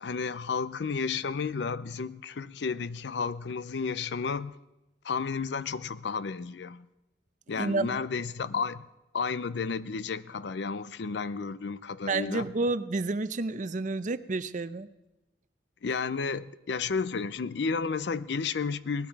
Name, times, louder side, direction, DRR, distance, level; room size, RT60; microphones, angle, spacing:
voice 1, 0.0-4.5 5.0-6.9 7.5-8.9 9.1-12.5 15.8-19.1, left 5 dB, 70° left, 17 dB, 0.5 m, -32 dB
voice 2, 7.6-8.0 12.1-14.9, right 3 dB, 45° right, 14 dB, 0.6 m, -30 dB
18.5 x 12.5 x 4.7 m, 0.96 s
head